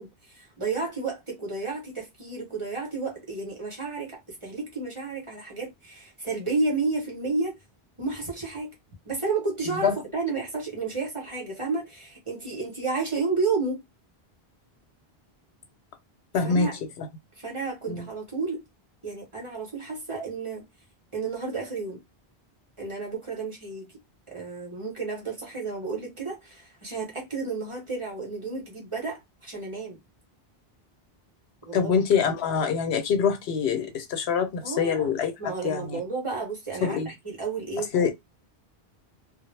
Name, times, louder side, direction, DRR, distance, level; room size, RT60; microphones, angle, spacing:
voice 1, 0.0-7.6 8.0-8.7 9.0-13.8 16.4-16.8 17.4-18.6 19.0-20.7 21.1-22.0 22.8-23.9 24.3-30.0 31.6-31.9 34.6-35.1 35.4-37.9, right 3 dB, 35° right, 0.8 m, -31 dB
voice 2, 16.3-16.7 17.9-18.1 31.7-35.3 35.6-36.0 36.8-37.1 37.9-38.1, left 6 dB, 80° left, 0.9 m, -24 dB
2.1 x 2.0 x 3.1 m
omnidirectional pair, 1.1 m